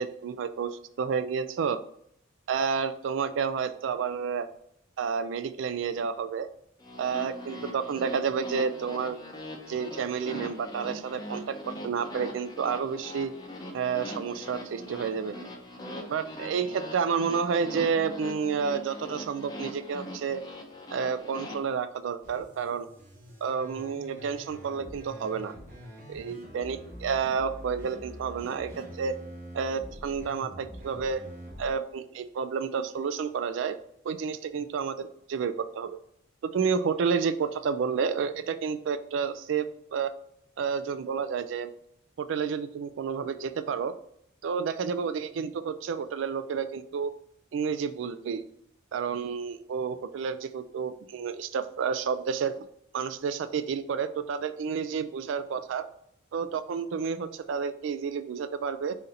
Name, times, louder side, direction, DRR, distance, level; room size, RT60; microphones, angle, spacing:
voice 1, 0.0-1.8 2.5-4.5 5.0-6.5 7.0-9.2 9.7-13.3 13.7-15.4 16.1-20.4 20.9-22.9 23.4-25.5 26.1-29.2 29.5-31.2 31.6-33.8 34.0-36.0 36.4-39.7 39.9-40.1 40.6-41.7 42.2-43.9 44.4-47.1 47.5-48.4 48.9-52.6 52.9-55.8 56.3-59.0, right 6 dB, 65° right, 12 dB, 0.3 m, -30 dB
sound 1, 6.8-21.6, left 1 dB, 20° left, 0.6 m, -41 dB
sound 2, 22.2-31.7, equal, 45° right, 1.4 m, -45 dB
4.1 x 2.6 x 4.0 m, 0.73 s
head